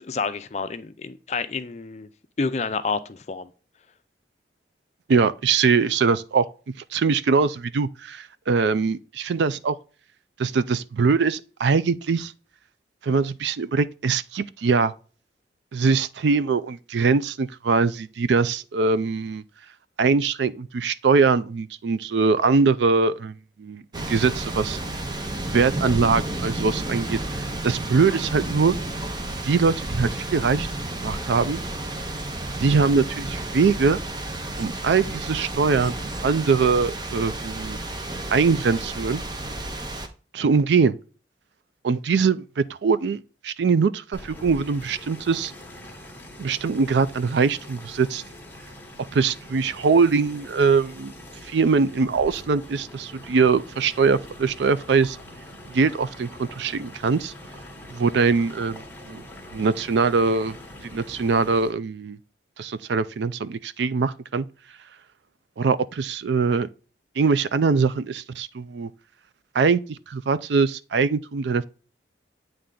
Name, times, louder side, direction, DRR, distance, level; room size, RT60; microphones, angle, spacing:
voice 1, 0.0-2.1 2.4-3.5, left 4 dB, 40° left, 0.5 m, -29 dB
voice 2, 5.1-6.5 6.9-9.8 10.4-12.3 13.0-14.9 15.7-19.4 20.0-24.8 25.5-28.8 29.4-30.7 31.0-31.6 32.6-34.0 34.6-37.8 38.3-39.2 40.3-40.9 41.8-45.5 46.4-48.2 49.1-51.1 51.4-55.2 55.7-57.3 57.9-59.2 59.5-60.6 60.8-62.2 62.6-64.5 65.6-66.7 67.2-68.9 69.5-71.7, right 5 dB, 75° right, 0.4 m, -22 dB
sound 1, 23.9-40.1, right 1 dB, 25° right, 0.7 m, -31 dB
sound 2, 44.1-61.7, left 1 dB, 10° left, 1.0 m, -43 dB
8.6 x 3.3 x 3.8 m
head